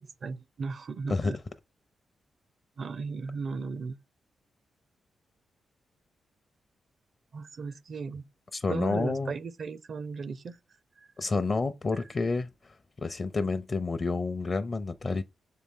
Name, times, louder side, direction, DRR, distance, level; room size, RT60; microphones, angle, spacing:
voice 1, 0.0-1.4 2.8-4.0 7.3-8.3 8.7-10.6 11.0-11.1 11.9-12.0, right 4 dB, 60° right, 0.5 m, -36 dB
voice 2, 8.5-9.3 11.2-15.2, left 3 dB, 40° left, 0.6 m, -29 dB
6.8 x 4.2 x 3.7 m
cardioid pair, 80°, 0 cm